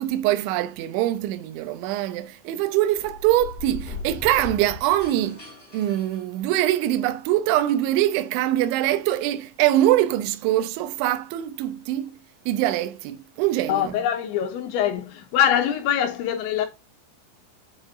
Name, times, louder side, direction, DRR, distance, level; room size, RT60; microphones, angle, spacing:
voice 1, 0.0-5.4 5.7-12.2 12.5-13.9, right 13 dB, 75° right, 3.0 m, -23 dB
sound 1, 2.9-6.9, left 3 dB, 10° left, 4.3 m, -38 dB
voice 2, 13.7-16.7, left 10 dB, 75° left, 3.0 m, -23 dB
8.3 x 7.2 x 2.6 m
omnidirectional pair, 5.8 m